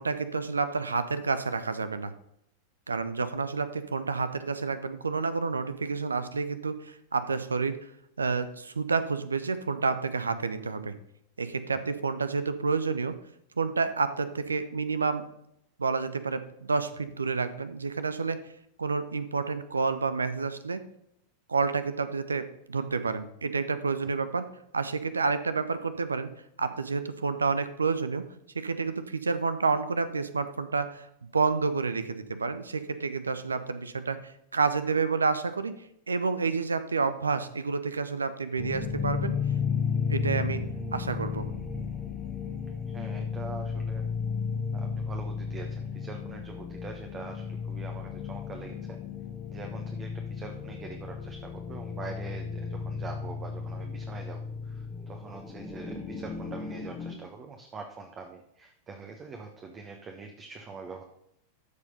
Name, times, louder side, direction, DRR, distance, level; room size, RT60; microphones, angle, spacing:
voice 1, 0.0-2.1 2.9-7.8 8.2-10.9 11.4-13.1 13.6-15.2 15.8-18.4 18.8-20.8 21.5-24.5 24.7-26.3 26.6-28.2 28.5-31.1 31.3-35.7 36.1-39.3 40.1-40.6 40.9-41.5, right 4 dB, 75° right, 12 dB, 0.8 m, -29 dB
sound 1, 38.6-57.1, left 6 dB, 10° left, 1.3 m, -34 dB
voice 2, 42.9-44.1 44.7-49.0 49.5-61.0, right 4 dB, 25° right, 3 dB, 1.2 m, -44 dB
13.5 x 4.8 x 5.3 m, 0.74 s
figure-of-eight pair, 90°, 0 cm